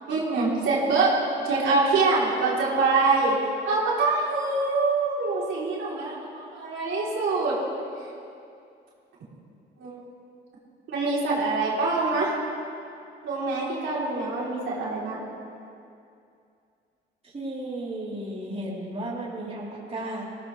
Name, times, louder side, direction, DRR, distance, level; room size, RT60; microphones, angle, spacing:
voice 1, 0.1-1.1 1.4-3.3 3.7-7.6 9.8-10.1 10.9-12.4 13.2-15.2, right 3 dB, 75° right, -6 dB, 3.7 m, -25 dB
voice 2, 17.2-20.2, right 1 dB, 30° right, -6 dB, 3.9 m, -34 dB
20.5 x 16.5 x 3.4 m, 2.5 s
cardioid pair, 90°, 20 cm